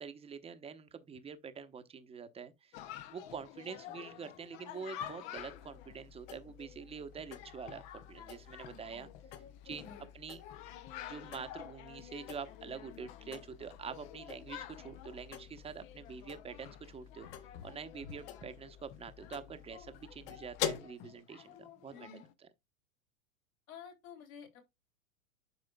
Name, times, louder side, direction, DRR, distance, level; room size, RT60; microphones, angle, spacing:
voice 1, 0.0-9.1 9.6-9.9 10.1-10.4 11.1-17.3 17.6-22.1, right 6 dB, 15° right, 0.8 m, -46 dB
Chatter, 2.7-22.3, left 10 dB, 20° left, 0.3 m, -50 dB
sound 1, 5.4-20.8, left 10 dB, 45° left, 1.2 m, -47 dB
voice 2, 8.7-9.1 9.8-10.1 21.9-22.3 23.7-24.6, left 6 dB, 75° left, 3.1 m, -52 dB
12.0 x 4.8 x 2.2 m
hypercardioid pair, 115°, 42 cm